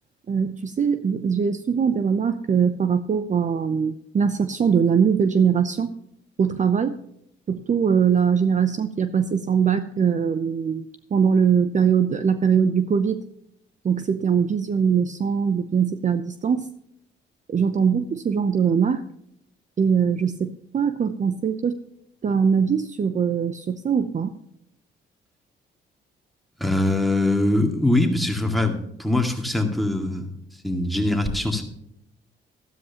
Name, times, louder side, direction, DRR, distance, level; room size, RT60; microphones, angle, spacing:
voice 1, 0.3-5.9 6.4-6.9 7.5-10.8 11.1-13.2 13.8-16.7 17.5-19.0 19.8-21.8 22.2-24.3, right 6 dB, 40° right, 10 dB, 0.7 m, -21 dB
voice 2, 26.6-31.6, left 2 dB, ahead, 5 dB, 2.2 m, -23 dB
13.0 x 12.5 x 2.9 m, 0.77 s
cardioid pair, 90°, 20 cm